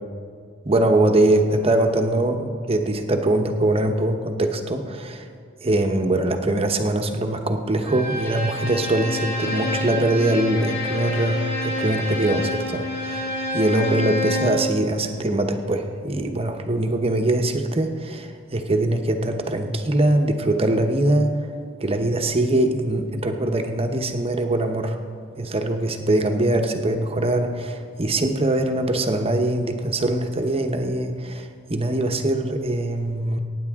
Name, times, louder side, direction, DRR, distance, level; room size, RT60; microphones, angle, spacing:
voice 1, 0.6-5.3 5.6-13.3 13.5-21.5 21.8-25.0 25.4-33.4, right 1 dB, 30° right, 5 dB, 1.0 m, -22 dB
Bowed string instrument, 7.8-14.7, left 1 dB, 55° left, 2.8 m, -28 dB
23.5 x 9.6 x 3.6 m, 2.2 s
head